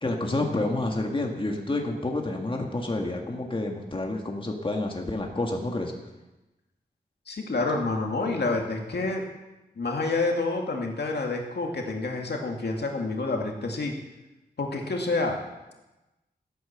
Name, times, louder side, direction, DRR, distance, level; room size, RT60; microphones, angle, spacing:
voice 1, 0.0-5.9, left 2 dB, 30° left, 2 dB, 1.8 m, -29 dB
voice 2, 7.3-9.2 9.8-13.9 14.6-15.4, left 3 dB, 75° left, 1 dB, 2.2 m, -28 dB
15.0 x 9.0 x 7.0 m, 1.0 s
wide cardioid pair, 110°, 17 cm